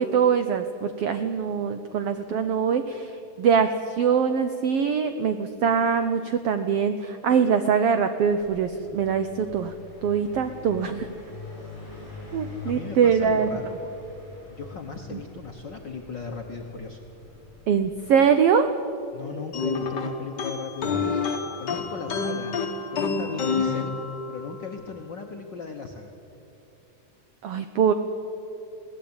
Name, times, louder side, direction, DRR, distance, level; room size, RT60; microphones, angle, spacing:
voice 1, 0.0-9.7 10.0-11.1 12.3-13.5 15.1-15.2 17.7-18.7 27.4-27.9, right 7 dB, 80° right, 9 dB, 1.3 m, -23 dB
Car passing by, 8.2-18.8, left 3 dB, 25° left, 5.7 m, -44 dB
voice 2, 12.6-13.7 14.5-17.0 19.1-22.5 22.9-23.9 24.3-26.1, left 5 dB, 60° left, 3 dB, 1.2 m, -37 dB
sound 1, 19.5-24.6, left 4 dB, 45° left, 1.6 m, -28 dB
21.5 x 16.5 x 8.8 m, 2.9 s
omnidirectional pair, 3.6 m